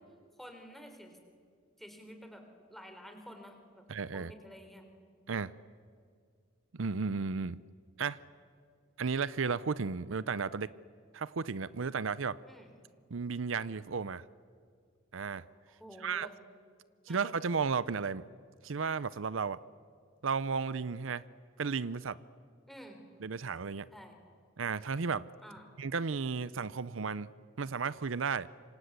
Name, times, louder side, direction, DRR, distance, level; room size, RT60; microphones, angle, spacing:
voice 1, 0.4-1.2 1.8-2.4 2.7-3.8 4.1-4.8 12.5-12.7 15.7-16.3 17.1-17.3 22.7-23.0 23.9-24.1 25.4-25.7, equal, ahead, 4 dB, 4.1 m, -50 dB
voice 2, 3.9-4.3 5.3-5.5 6.7-7.6 8.0-8.2 9.0-10.7 11.1-12.4 13.1-14.2 15.1-15.4 16.0-16.3 17.1-18.2 18.6-19.6 20.2-21.2 21.6-22.2 23.2-23.9 24.6-25.3 25.8-27.3 27.6-28.5, right 5 dB, 80° right, 18 dB, 0.7 m, -33 dB
27.5 x 25.5 x 8.2 m, 2.1 s
head